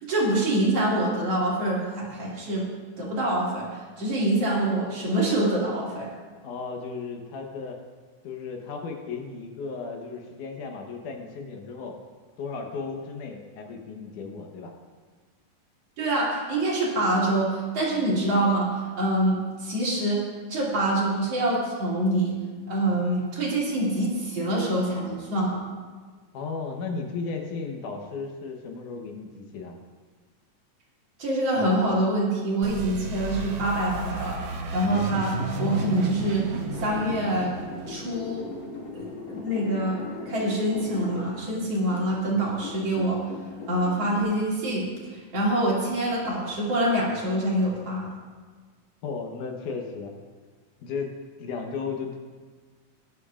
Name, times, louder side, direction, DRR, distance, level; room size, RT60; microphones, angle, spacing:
voice 1, 0.0-2.7 3.0-6.1 16.0-18.7 19.0-20.2 20.5-22.3 22.7-25.6 31.2-34.4 34.7-36.5 36.8-37.5 37.9-38.5 38.9-43.2 43.7-44.9 45.1-48.1, right 1 dB, 50° right, -6 dB, 3.5 m, -25 dB
voice 2, 6.4-7.8 8.2-12.0 12.4-14.7 26.3-29.7 49.0-50.1 50.8-52.2, left 4 dB, 75° left, 2 dB, 2.5 m, -35 dB
sound 1, 32.6-39.2, right 3 dB, 80° right, 1.1 m, -33 dB
sound 2, 34.8-41.3 41.8-44.2, left 3 dB, 55° left, 2.6 m, -39 dB
18.5 x 11.0 x 2.5 m, 1.5 s
omnidirectional pair, 3.7 m